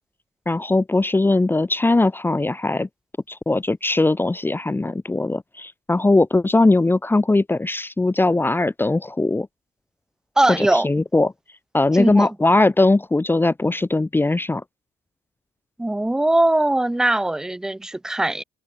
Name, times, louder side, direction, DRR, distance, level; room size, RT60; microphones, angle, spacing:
voice 1, 0.5-2.9 3.3-9.5 10.5-11.3 11.7-14.6, left 2 dB, 10° left, 1.1 m, -20 dB
voice 2, 10.4-10.9 11.9-12.3 15.8-18.4, right 1 dB, 5° right, 0.3 m, -20 dB
cardioid pair, 110°, 17 cm